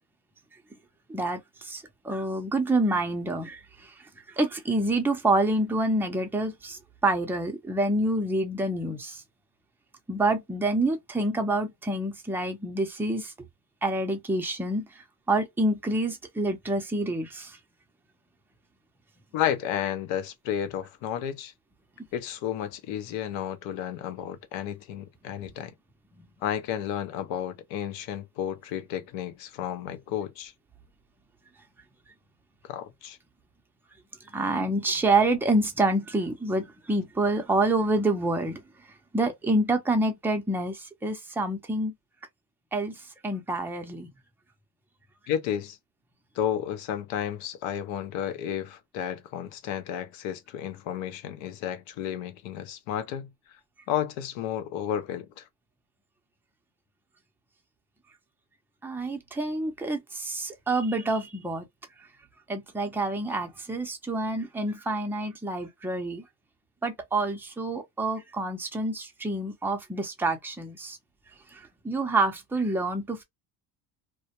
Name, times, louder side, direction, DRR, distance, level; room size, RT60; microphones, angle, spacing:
voice 1, 1.1-3.9 4.3-9.2 10.1-13.3 13.8-17.6 34.3-38.6 39.1-41.9 42.7-44.1 58.8-61.6 62.5-66.2 66.8-71.0 71.5-73.2, right 2 dB, 5° right, 0.5 m, -27 dB
voice 2, 19.3-21.5 22.1-25.7 26.4-30.5 32.6-33.2 45.3-45.8 46.3-53.3 53.9-55.5, left 10 dB, 65° left, 0.7 m, -32 dB
2.2 x 2.1 x 2.8 m
supercardioid pair, 90°, 49 cm